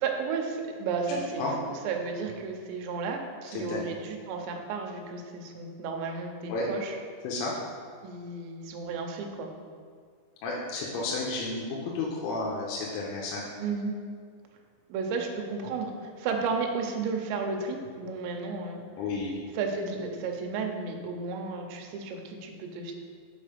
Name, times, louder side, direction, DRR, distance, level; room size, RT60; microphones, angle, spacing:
voice 1, 0.0-7.0 8.0-9.5 13.6-13.9 14.9-18.8 19.5-22.9, right 4 dB, 80° right, 3 dB, 2.7 m, -33 dB
voice 2, 1.1-1.5 3.5-3.8 6.5-6.7 7.2-7.5 10.4-13.5 19.0-19.4, left 3 dB, 85° left, -4 dB, 3.2 m, -32 dB
7.4 x 4.8 x 5.0 m, 2.1 s
omnidirectional pair, 5.7 m